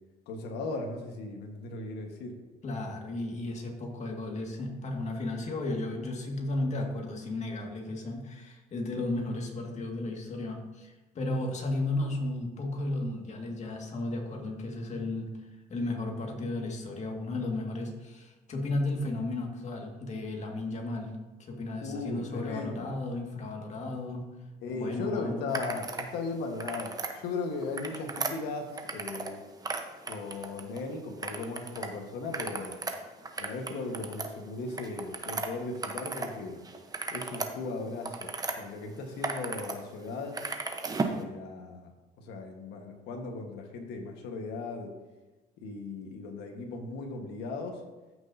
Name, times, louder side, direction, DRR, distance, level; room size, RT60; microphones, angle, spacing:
voice 1, 0.3-2.4 21.8-22.9 24.6-29.4 30.0-32.8 33.4-36.6 37.1-38.3 38.6-40.4 41.1-41.9 42.2-44.9 45.6-47.8, left 3 dB, 80° left, 2 dB, 1.5 m, -37 dB
voice 2, 2.6-24.3 24.7-25.6, left 2 dB, 45° left, 1 dB, 2.0 m, -34 dB
sound 1, 25.5-26.1 26.5-27.1 27.6-29.4 29.6-30.8 31.2-31.9 32.2-36.3 36.6-38.6 39.0-39.8 40.0-41.2, right 3 dB, 20° right, 1.0 m, -36 dB
14.5 x 6.3 x 2.8 m, 1.2 s
cardioid pair, 110°, 17 cm